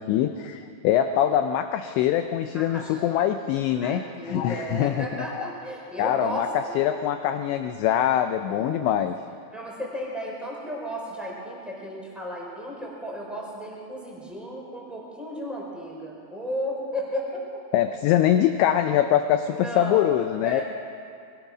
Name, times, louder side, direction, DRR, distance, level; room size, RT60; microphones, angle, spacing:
voice 1, 0.0-5.5 6.0-6.5 6.8-9.2 17.7-20.6, left 11 dB, 85° left, 8 dB, 2.5 m, -23 dB
voice 2, 2.5-3.0 3.8-6.7 8.4-9.0 9.5-17.4 19.4-20.1 20.4-20.6, equal, ahead, -3 dB, 4.1 m, -34 dB
22.5 x 20.5 x 6.1 m, 2.4 s
omnidirectional pair, 5.9 m